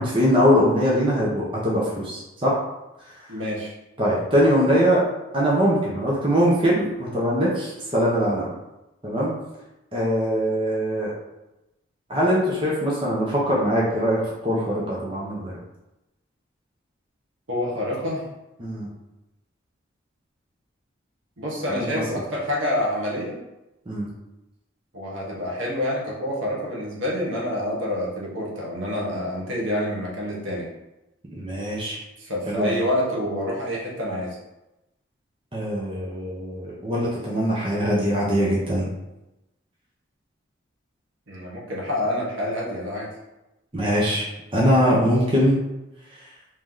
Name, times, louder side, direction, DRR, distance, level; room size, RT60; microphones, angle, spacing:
voice 1, 0.0-2.6 4.0-5.0 5.3-8.5 9.0-9.3 9.9-11.1 12.1-15.6 18.6-18.9 21.7-22.2 23.9-24.1 31.3-32.0 32.5-32.8 35.5-38.9 43.7-44.3 44.5-45.6, equal, 25° right, -6 dB, 0.8 m, -22 dB
voice 2, 3.3-3.7 17.5-18.3 21.4-23.4 24.9-30.7 32.2-34.4 41.3-43.1, left 1 dB, 75° right, -4 dB, 1.1 m, -27 dB
3.2 x 2.9 x 3.7 m, 0.95 s
head